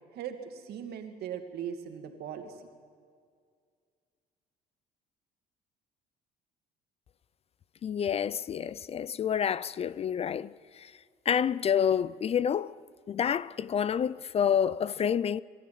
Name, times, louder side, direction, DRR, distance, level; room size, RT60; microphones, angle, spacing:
voice 1, 0.1-2.6, right 8 dB, 70° right, 2.3 m, -39 dB
voice 2, 7.8-10.9 11.3-12.7 13.1-15.4, left 8 dB, 35° left, 0.4 m, -28 dB
23.0 x 13.5 x 9.4 m
cardioid pair, 110°, 17 cm